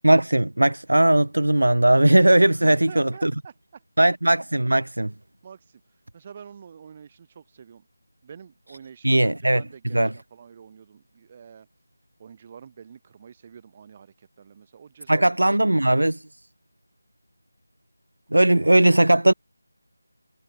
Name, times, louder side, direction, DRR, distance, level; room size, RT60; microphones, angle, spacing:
voice 1, 0.0-3.3 4.0-5.1 9.0-9.6 9.9-10.1 15.1-16.2 18.3-19.3, right 1 dB, 75° right, 0.5 m, -18 dB
voice 2, 2.5-3.8 5.4-5.8 6.1-7.9 8.2-11.7 12.2-15.3 15.6-15.8, right 7 dB, 25° right, 3.1 m, -46 dB
figure-of-eight pair, 165°, 0 cm